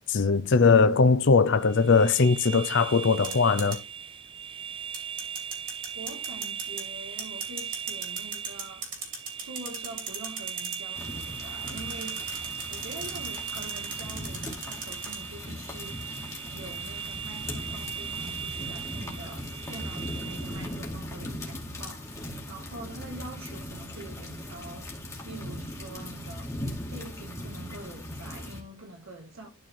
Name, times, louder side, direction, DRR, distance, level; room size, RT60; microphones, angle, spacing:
voice 1, 0.1-3.8, left 4 dB, 55° left, 0.6 m, -20 dB
sound 1, 1.6-20.8, right 8 dB, 25° right, 0.4 m, -39 dB
sound 2, 3.2-3.8 4.9-6.8 7.2-10.8 11.7-15.2, right 5 dB, 40° right, 3.0 m, -37 dB
voice 2, 5.9-8.9 9.4-16.1 16.5-24.9 25.2-29.5, right 2 dB, 65° right, 1.9 m, -45 dB
sound 3, 10.9-28.6, left 1 dB, 15° left, 2.3 m, -39 dB
12.0 x 4.3 x 4.6 m
head